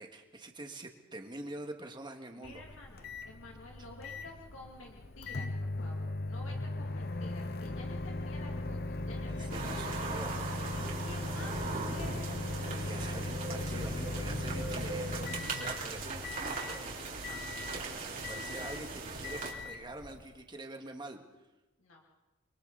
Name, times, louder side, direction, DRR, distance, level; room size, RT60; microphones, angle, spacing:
voice 1, 0.0-2.6 3.8-3.9 9.2-10.4 12.6-17.1 18.2-21.2, right 2 dB, 25° right, 4 dB, 2.0 m, -45 dB
voice 2, 2.4-12.3 16.3-16.5 17.2-17.4 18.4-18.5 21.8-22.0, left 2 dB, 80° left, -1 dB, 2.7 m, -51 dB
Microwave oven, 2.4-20.4, left 2 dB, 50° left, 0.9 m, -39 dB
sound 1, 9.5-19.5, right 4 dB, 45° right, 4.2 m, -39 dB
29.5 x 23.5 x 4.2 m, 1.1 s
head